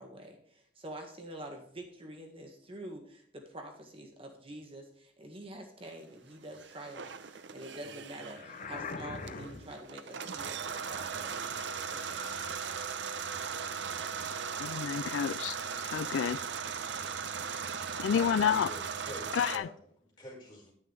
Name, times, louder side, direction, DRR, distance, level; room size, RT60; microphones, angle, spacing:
voice 1, 0.0-11.6 11.9-12.4, right 1 dB, 30° right, 1.7 m, -47 dB
sound 1, 6.5-19.6, right 6 dB, 70° right, 0.7 m, -38 dB
sound 2, 8.2-9.8, left 4 dB, 45° left, 0.7 m, -41 dB
voice 2, 14.6-16.4 18.0-18.7 19.3-19.7, left 8 dB, 85° left, 0.3 m, -30 dB
voice 3, 18.1-19.8 20.2-20.7, left 1 dB, 25° left, 5.0 m, -46 dB
10.0 x 9.8 x 3.3 m
head